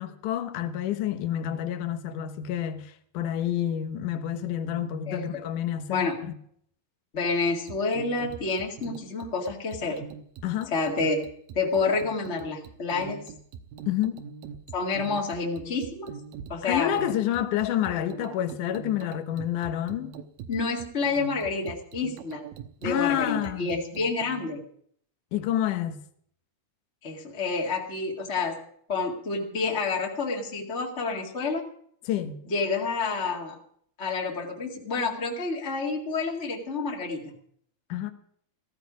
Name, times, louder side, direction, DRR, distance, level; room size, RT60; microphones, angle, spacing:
voice 1, 0.0-6.3 10.4-10.7 13.9-14.2 16.7-20.1 22.8-23.7 25.3-26.0 32.1-32.4 37.9-38.1, left 11 dB, 65° left, 2.5 m, -29 dB
voice 2, 5.1-5.4 5.9-6.2 7.1-10.0 10.7-11.2 11.5-13.2 14.7-16.1 16.5-16.9 20.5-22.4 22.8-24.6 27.0-28.6 28.9-31.6 32.5-33.6 34.0-37.3, left 4 dB, 25° left, 1.7 m, -29 dB
sound 1, 7.7-24.4, right 7 dB, 80° right, 2.7 m, -43 dB
15.5 x 15.0 x 5.0 m
omnidirectional pair, 4.2 m